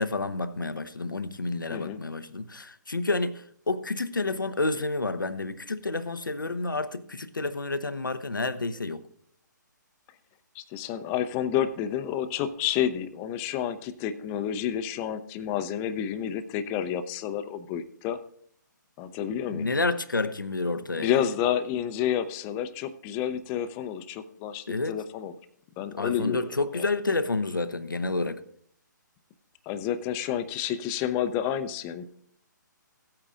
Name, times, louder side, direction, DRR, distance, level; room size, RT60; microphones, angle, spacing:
voice 1, 0.0-9.0 19.5-21.2 24.7-25.0 26.0-28.4, left 3 dB, 90° left, 0.8 m, -29 dB
voice 2, 1.7-2.0 10.5-18.2 19.0-19.7 21.0-25.3 25.8-26.9 29.7-32.0, left 10 dB, 20° left, 0.6 m, -30 dB
17.0 x 8.7 x 2.5 m
figure-of-eight pair, 135°, 11 cm